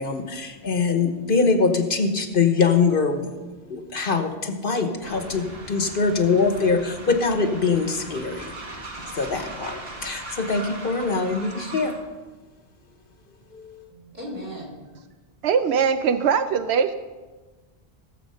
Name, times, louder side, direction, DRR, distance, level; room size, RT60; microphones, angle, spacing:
voice 1, 0.0-3.3 3.7-8.5 9.1-11.9 13.5-13.9, left 4 dB, 60° left, 6 dB, 1.2 m, -23 dB
Train, 5.0-12.1, right 2 dB, 65° right, 1.7 m, -39 dB
voice 2, 13.9-15.5, equal, 45° right, -3 dB, 4.2 m, -39 dB
voice 3, 15.4-16.9, right 6 dB, 85° right, 10 dB, 0.9 m, -21 dB
17.0 x 7.3 x 5.5 m, 1.3 s
omnidirectional pair, 1.1 m